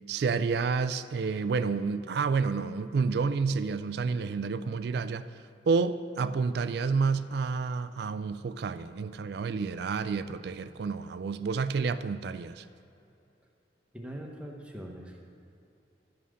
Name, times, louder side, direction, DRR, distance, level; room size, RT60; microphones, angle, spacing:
voice 1, 0.0-5.3 5.7-12.7, right 4 dB, 55° right, 0.3 m, -29 dB
voice 2, 13.9-15.2, equal, 5° right, 0.9 m, -42 dB
12.5 x 5.5 x 6.3 m
head